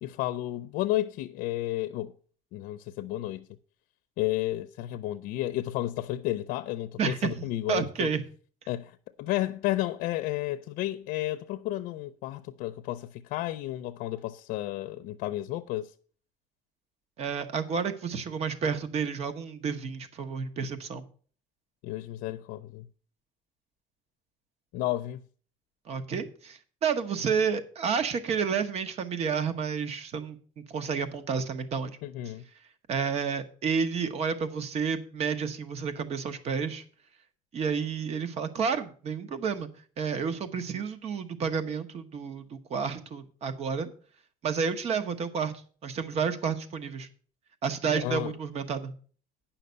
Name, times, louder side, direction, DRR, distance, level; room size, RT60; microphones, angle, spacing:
voice 1, 0.0-2.1 2.5-3.5 4.2-8.1 8.7-8.9 9.2-15.9 21.8-22.9 24.7-25.2 32.0-32.4 48.0-48.3, left 15 dB, 90° left, 0.5 m, -32 dB
voice 2, 7.0-8.2 17.2-21.0 25.9-32.0 32.9-36.8 37.5-39.7 40.0-43.9 44.4-45.5 45.8-47.1 47.6-48.9, right 6 dB, 45° right, 1.1 m, -30 dB
9.5 x 5.8 x 6.7 m
cardioid pair, 150°, 15 cm